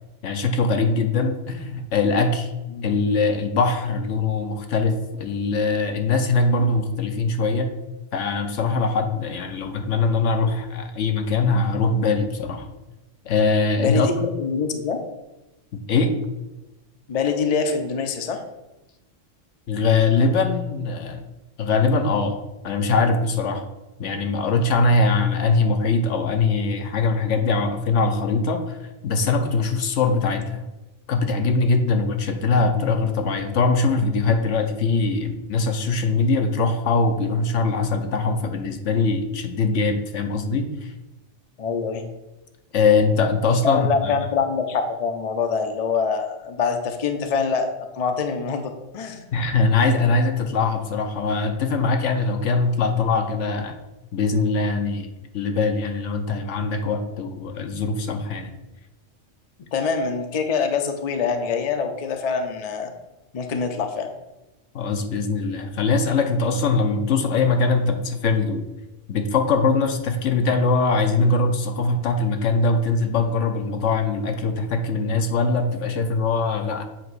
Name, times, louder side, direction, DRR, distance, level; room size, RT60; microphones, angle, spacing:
voice 1, 0.2-2.5 2.8-7.7 8.1-12.7 13.2-14.3 15.9-16.1 19.7-21.2 21.6-23.6 24.0-30.6 31.1-40.9 42.7-44.1 49.3-53.8 54.1-58.6 64.7-68.6 69.1-76.8, left 3 dB, 70° left, 5 dB, 1.1 m, -22 dB
voice 2, 13.8-15.0 17.1-18.4 41.6-42.0 43.6-49.2 59.7-62.9 63.3-64.1, left 5 dB, 40° left, 6 dB, 0.6 m, -25 dB
7.7 x 3.0 x 6.1 m, 1.0 s
omnidirectional pair, 1.3 m